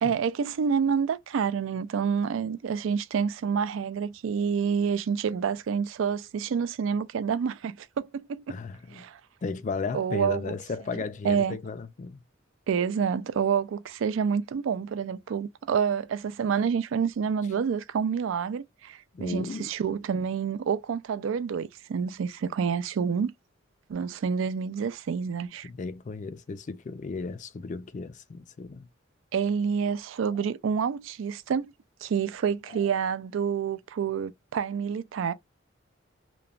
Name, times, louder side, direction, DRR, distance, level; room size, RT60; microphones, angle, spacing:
voice 1, 0.0-7.9 8.1-8.6 8.9-9.2 9.9-10.5 11.2-11.6 12.7-23.3 23.9-25.7 29.3-31.7 32.0-35.3, right 6 dB, 70° right, 0.3 m, -28 dB
voice 2, 8.5-9.0 9.4-12.2 19.1-19.7 25.6-28.9 32.7-32.8, left 4 dB, 40° left, 0.3 m, -35 dB
2.9 x 2.1 x 2.4 m
head